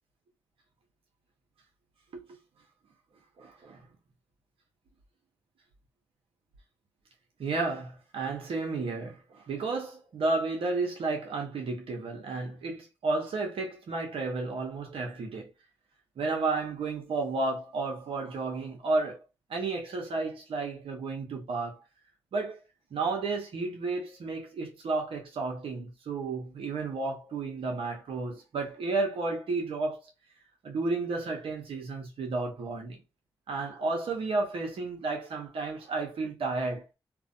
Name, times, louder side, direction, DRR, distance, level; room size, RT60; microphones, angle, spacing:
voice 1, 3.4-3.8 7.4-15.5 16.2-19.2 19.5-21.8 22.3-22.6 22.9-30.0 30.6-33.0 33.5-36.8, right 3 dB, 75° right, 0.7 m, -32 dB
2.4 x 2.1 x 2.5 m
supercardioid pair, 40°, 10 cm